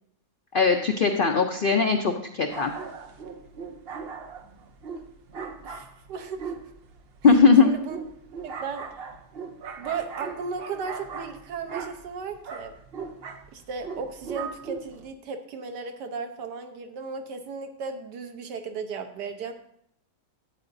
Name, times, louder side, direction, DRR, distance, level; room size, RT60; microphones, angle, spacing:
voice 1, 0.5-2.7 7.2-7.7, left 5 dB, 75° left, 4 dB, 0.4 m, -19 dB
sound 1, 2.5-15.1, right 5 dB, 50° right, 0.7 m, -39 dB
voice 2, 5.6-6.5 7.6-8.0 8.4-8.9 9.8-12.8 13.5-19.5, right 5 dB, 90° right, 5 dB, 1.5 m, -35 dB
12.5 x 8.9 x 2.6 m, 0.69 s
omnidirectional pair, 1.8 m